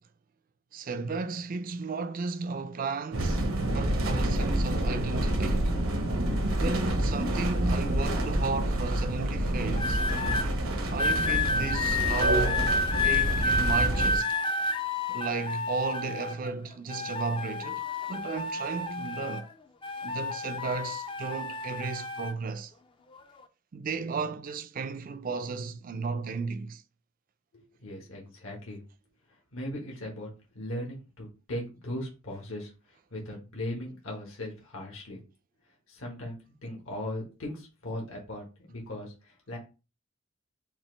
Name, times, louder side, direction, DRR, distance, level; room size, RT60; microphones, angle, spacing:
voice 1, 0.7-5.8 6.5-10.0 10.9-12.7 13.0-14.4 15.1-17.8 18.1-19.5 20.0-22.7 23.7-26.8, right 4 dB, 40° right, 0.4 m, -34 dB
sound 1, 3.1-14.2, right 1 dB, 75° right, 0.9 m, -28 dB
sound 2, 9.7-10.5 11.0-16.5 16.9-19.5 19.8-22.3 23.1-23.4, left 2 dB, 25° left, 0.4 m, -30 dB
voice 2, 27.5-28.8 29.5-30.3 30.5-32.7 33.1-35.2 35.9-39.6, left 1 dB, 75° left, 1.4 m, -38 dB
5.7 x 2.5 x 3.2 m
head